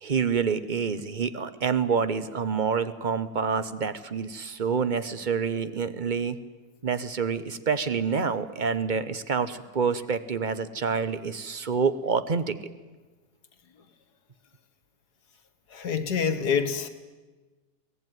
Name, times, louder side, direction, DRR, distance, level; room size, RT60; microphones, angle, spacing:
voice 1, 0.0-6.4 6.8-12.6, right 6 dB, 35° right, 13 dB, 0.9 m, -27 dB
voice 2, 15.7-16.9, left 6 dB, 65° left, 11 dB, 2.0 m, -26 dB
23.5 x 18.0 x 9.3 m, 1.3 s
omnidirectional pair, 1.8 m